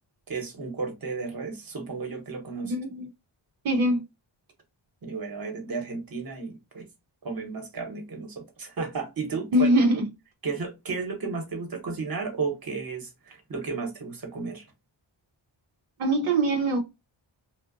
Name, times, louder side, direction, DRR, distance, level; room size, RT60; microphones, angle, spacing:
voice 1, 0.3-2.8 5.0-6.9 7.2-10.0 10.4-14.7, right 4 dB, 45° right, 0.9 m, -33 dB
voice 2, 2.6-3.1 3.6-4.0 9.5-10.1 16.0-16.8, right 1 dB, 85° right, 0.7 m, -22 dB
2.6 x 2.1 x 2.4 m
wide cardioid pair, 80°, 48 cm